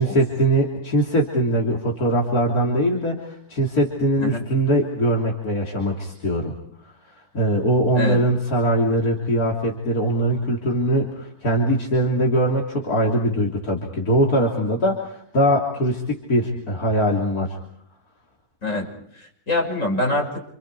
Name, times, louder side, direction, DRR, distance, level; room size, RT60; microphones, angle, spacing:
voice 1, 0.0-6.5 7.3-17.6, right 1 dB, 75° left, -1 dB, 3.8 m, -21 dB
voice 2, 18.6-20.4, left 2 dB, 55° left, 1 dB, 6.7 m, -25 dB
29.0 x 28.5 x 4.9 m, 0.67 s
omnidirectional pair, 1.6 m